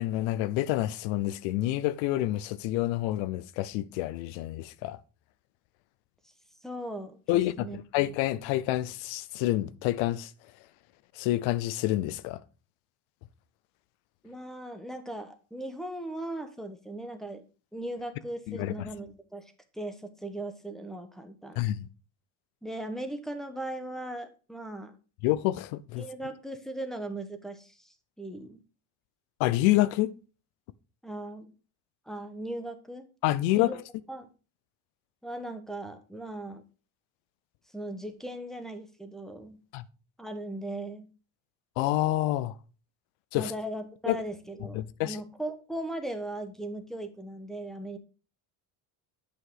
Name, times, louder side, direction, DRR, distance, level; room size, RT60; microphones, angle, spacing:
voice 1, 0.0-5.0 7.3-7.7 7.9-10.3 11.2-12.4 18.5-18.7 21.6-21.9 25.2-26.1 29.4-30.2 33.2-33.8 39.7-39.8 41.8-42.5 43.3-43.5 44.1-44.2 44.7-45.2, left 15 dB, 90° left, 0.8 m, -28 dB
voice 2, 6.6-7.8 14.2-17.4 17.7-21.7 22.6-24.9 26.0-28.6 31.0-31.5 32.1-33.0 33.5-33.8 34.1-34.3 35.2-36.6 37.7-39.6 40.2-41.1 43.3-48.0, right 1 dB, ahead, 1.3 m, -38 dB
8.5 x 5.9 x 4.7 m
cardioid pair, 110°, 46 cm